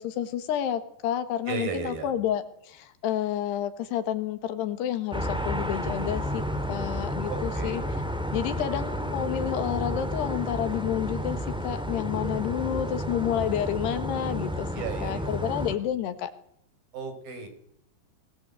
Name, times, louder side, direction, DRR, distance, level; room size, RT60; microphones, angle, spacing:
voice 1, 0.0-7.8 8.3-14.7 15.0-16.3, left 10 dB, 75° left, 11 dB, 3.5 m, -30 dB
voice 2, 1.5-2.1 7.3-7.8 14.7-15.5 16.9-17.5, right 5 dB, 60° right, 7 dB, 6.2 m, -35 dB
sound 1, 5.1-15.7, equal, ahead, 1.1 m, -31 dB
23.5 x 19.0 x 8.1 m, 0.70 s
omnidirectional pair, 4.9 m